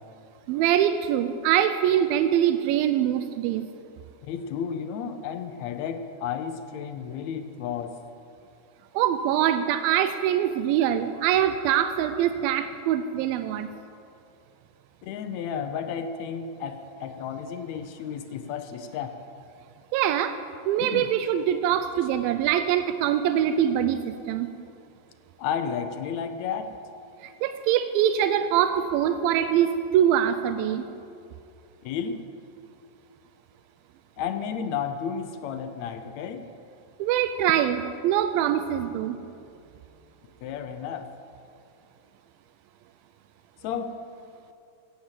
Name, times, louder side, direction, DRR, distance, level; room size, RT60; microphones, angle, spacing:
voice 1, 0.5-3.7 8.9-13.7 19.9-20.4 20.7-24.5 27.2-30.8 37.0-39.2, right 10 dB, 90° right, 10 dB, 2.4 m, -23 dB
voice 2, 4.2-8.0 15.0-19.2 20.8-21.1 25.4-26.7 31.8-32.2 34.2-36.4 40.4-41.1 43.6-44.0, left 7 dB, 80° left, 8 dB, 1.6 m, -32 dB
16.5 x 8.7 x 8.1 m, 2.5 s
omnidirectional pair, 4.1 m